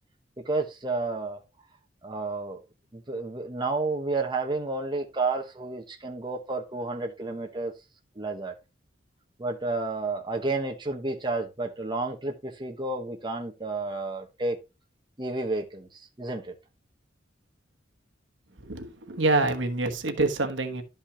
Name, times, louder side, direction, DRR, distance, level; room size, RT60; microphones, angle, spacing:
voice 1, 0.5-1.4 2.0-2.6 2.9-7.7 8.2-8.5 9.4-14.6 15.2-15.9 16.2-16.5, right 3 dB, 25° right, 1.1 m, -31 dB
voice 2, 18.6-20.8, right 2 dB, 75° right, 1.2 m, -26 dB
12.0 x 5.4 x 2.8 m
head